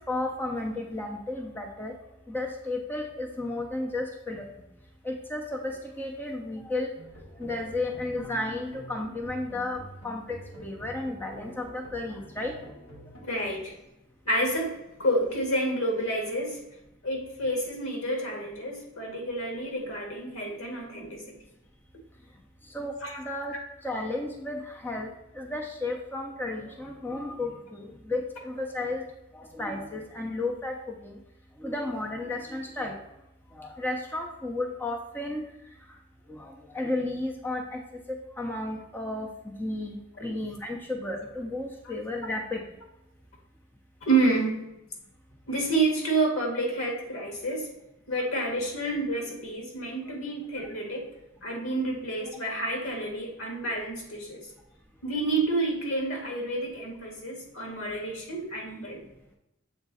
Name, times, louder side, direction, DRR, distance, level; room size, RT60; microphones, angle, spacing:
voice 1, 0.0-1.9 2.3-4.5 5.0-6.9 7.4-12.6 22.7-23.6 23.8-29.0 29.3-30.8 31.0-31.1 31.6-33.0 33.5-35.4 36.3-37.8 38.1-42.6, left 2 dB, 10° left, 1 dB, 0.6 m, -33 dB
sound 1, 6.9-13.3, equal, 70° left, 2.0 m, -47 dB
voice 2, 13.2-13.7 14.3-16.6 17.0-21.4 23.0-23.2 40.2-40.3 44.0-44.6 45.5-47.7 48.1-51.1 51.4-54.5 55.0-59.0, right 2 dB, 85° left, 0 dB, 1.9 m, -29 dB
7.2 x 3.7 x 4.1 m, 0.89 s
head